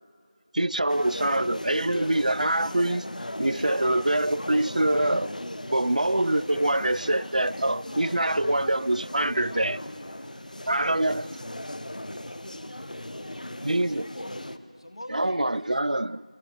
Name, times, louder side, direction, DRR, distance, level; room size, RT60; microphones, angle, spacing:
voice 1, 0.5-3.1 3.4-5.3 5.7-9.8 10.7-11.2 13.6-14.1 15.1-16.2, right 1 dB, 75° right, 0.6 m, -25 dB
sound 1, 0.9-14.6, left 1 dB, 85° left, 1.3 m, -37 dB
voice 2, 9.8-13.9, left 1 dB, 5° left, 0.8 m, -57 dB
voice 3, 13.2-15.8, left 1 dB, 45° left, 2.3 m, -47 dB
30.0 x 20.5 x 9.6 m
figure-of-eight pair, 180°, 4 cm